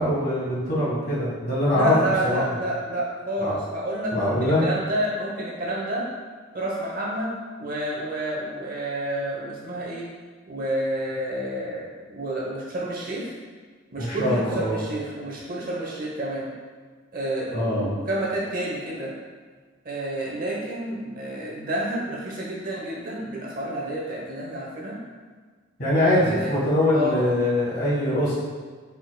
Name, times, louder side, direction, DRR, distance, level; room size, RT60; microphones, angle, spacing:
voice 1, 0.0-1.9 2.2-2.4 3.4-3.5 4.1-4.6 14.0-14.8 17.5-17.9 25.8-28.3, left 1 dB, 50° left, -7 dB, 1.4 m, -23 dB
voice 2, 1.7-6.1 6.5-7.3 7.6-10.1 10.5-13.3 13.9-16.5 17.1-19.1 19.8-25.0 26.3-26.6 26.9-27.3, right 1 dB, 45° right, -4 dB, 0.8 m, -29 dB
4.2 x 4.0 x 2.2 m, 1.5 s
head